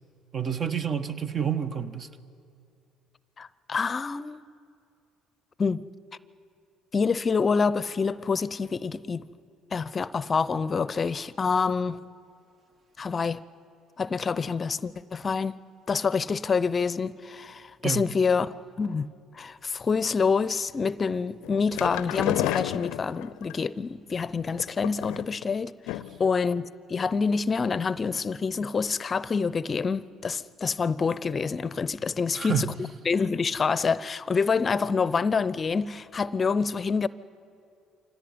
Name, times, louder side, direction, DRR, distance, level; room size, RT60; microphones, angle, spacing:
voice 1, 0.3-2.1 17.8-18.0 32.3-32.7, right 8 dB, 45° right, 1.4 m, -29 dB
voice 2, 3.4-4.4 5.6-5.8 6.9-9.2 9.7-12.0 13.0-13.4 14.0-15.5 15.9-19.1 19.3-32.7 33.1-37.1, left 5 dB, 35° left, 0.6 m, -27 dB
sound 1, 21.4-23.5 24.5-25.4 25.9-26.3 26.6-26.7 27.0-27.1, left 15 dB, 80° left, 0.5 m, -31 dB
25.0 x 17.5 x 9.5 m
hypercardioid pair, 65°, 0 cm